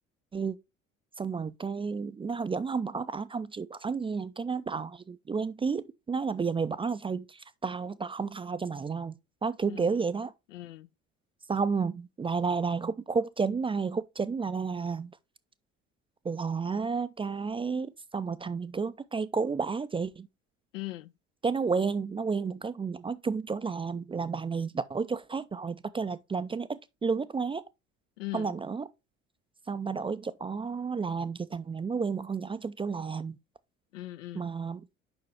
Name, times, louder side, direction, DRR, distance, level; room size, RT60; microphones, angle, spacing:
voice 1, 1.2-10.3 11.5-15.1 16.2-20.3 21.4-27.6 28.3-28.9 29.7-33.4 34.4-34.8, right 5 dB, 15° right, 0.4 m, -31 dB
voice 2, 9.6-10.0 10.5-10.9 20.7-21.1 28.2-28.5 33.9-34.5, left 17 dB, 75° left, 0.5 m, -40 dB
6.9 x 5.6 x 3.4 m
figure-of-eight pair, 55°, 39 cm